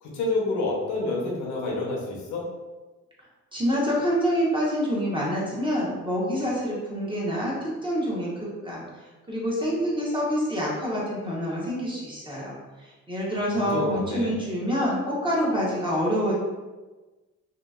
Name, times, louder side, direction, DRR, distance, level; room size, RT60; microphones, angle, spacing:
voice 1, 0.0-2.5 13.6-14.3, left 2 dB, 80° left, -2 dB, 0.8 m, -28 dB
voice 2, 3.5-12.5 12.8-16.4, equal, 15° right, -5 dB, 0.9 m, -27 dB
2.8 x 2.5 x 2.3 m, 1.2 s
cardioid pair, 90°, 30 cm